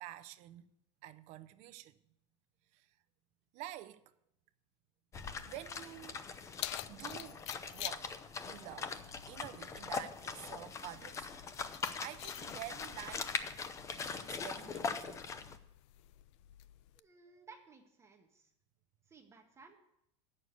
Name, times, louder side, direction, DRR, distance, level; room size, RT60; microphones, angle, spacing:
voice 1, 0.0-0.7 1.0-2.0 2.7-2.9 3.5-4.0 5.5-6.3 6.9-7.5 7.7-9.0 9.3-11.5 12.0-13.4 13.9-15.3, right 15 dB, 45° right, 0.6 m, -49 dB
sound 1, 5.1-15.6, left 5 dB, 20° left, 0.6 m, -42 dB
Keys jangling, 6.0-17.0, left 15 dB, 65° left, 0.4 m, -50 dB
voice 2, 16.9-18.5 19.1-19.8, right 4 dB, 20° right, 0.8 m, -58 dB
8.2 x 6.6 x 7.8 m
supercardioid pair, 140°, 16 cm